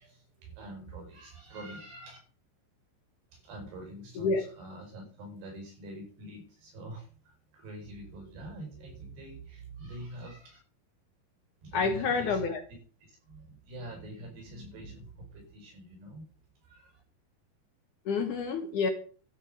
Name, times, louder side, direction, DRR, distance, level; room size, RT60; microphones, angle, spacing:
voice 1, 0.0-2.2 3.3-10.6 11.6-12.8 13.1-16.3 16.6-17.0, right 1 dB, 75° right, 2 dB, 6.9 m, -45 dB
voice 2, 11.7-12.6 18.1-18.9, left 4 dB, 65° left, 6 dB, 2.3 m, -28 dB
12.5 x 7.5 x 6.6 m, 0.41 s
omnidirectional pair, 4.7 m